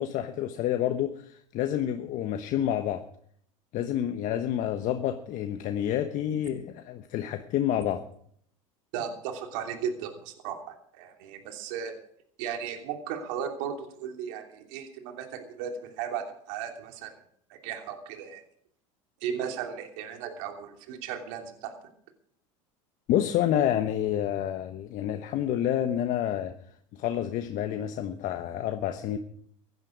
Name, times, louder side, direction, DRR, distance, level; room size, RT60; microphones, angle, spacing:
voice 1, 0.0-3.0 3.7-8.0 23.1-26.5 26.9-29.2, left 11 dB, 50° left, 7 dB, 1.1 m, -28 dB
voice 2, 8.9-11.9 12.4-17.1 17.5-18.4 19.2-21.7, right 8 dB, 65° right, 4 dB, 3.0 m, -36 dB
16.0 x 11.0 x 5.2 m, 0.64 s
hypercardioid pair, 90°, 18 cm